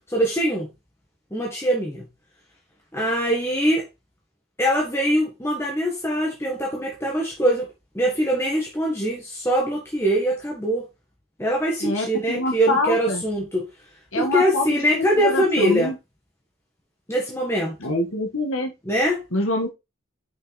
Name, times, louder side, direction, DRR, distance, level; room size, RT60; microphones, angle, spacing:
voice 1, 0.1-0.7 1.3-2.1 2.9-3.8 4.6-7.7 7.9-10.8 11.4-13.7 14.1-15.9 17.1-17.9 18.9-19.2, equal, 10° left, 1.4 m, -23 dB
voice 2, 11.8-13.2 14.1-16.0 17.8-18.7 19.3-19.7, left 2 dB, 65° left, 1.6 m, -25 dB
6.2 x 5.6 x 4.0 m
head